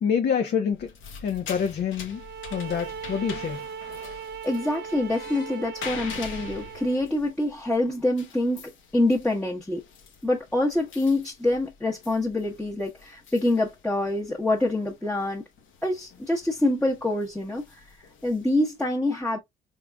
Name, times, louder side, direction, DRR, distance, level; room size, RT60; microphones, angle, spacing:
voice 1, 0.0-0.9 1.2-2.2 2.5-3.6, left 7 dB, 55° left, 0.7 m, -26 dB
sound 1, 0.7-18.9, left 6 dB, 80° left, 1.0 m, -45 dB
sound 2, 2.1-7.1, right 7 dB, 55° right, 0.5 m, -39 dB
voice 2, 4.4-9.8 10.2-15.4 15.8-17.8 18.2-19.4, left 1 dB, 5° left, 1.0 m, -26 dB
3.7 x 3.7 x 2.2 m
cardioid pair, 90°, 20 cm